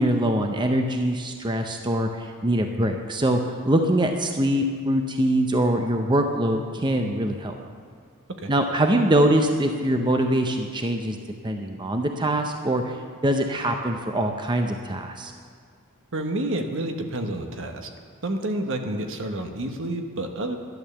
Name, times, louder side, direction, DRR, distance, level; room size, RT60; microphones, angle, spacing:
voice 1, 0.0-3.4 3.7-7.5 8.5-11.2 11.4-13.0 13.2-15.3, right 1 dB, 20° right, 4 dB, 0.7 m, -23 dB
voice 2, 16.1-17.9 18.2-20.6, right 1 dB, 60° right, 5 dB, 1.2 m, -29 dB
11.5 x 11.0 x 7.0 m, 2.2 s
head